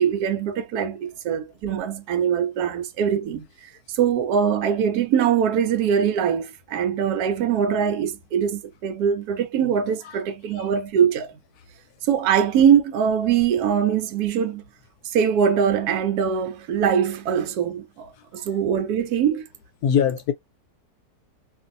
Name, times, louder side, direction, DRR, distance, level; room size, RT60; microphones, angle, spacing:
voice 1, 0.0-3.4 3.9-11.4 12.1-14.6 15.0-19.4, right 8 dB, 70° right, 1.1 m, -22 dB
voice 2, 19.8-20.3, left 8 dB, 70° left, 1.0 m, -22 dB
2.6 x 2.6 x 2.5 m
omnidirectional pair, 1.8 m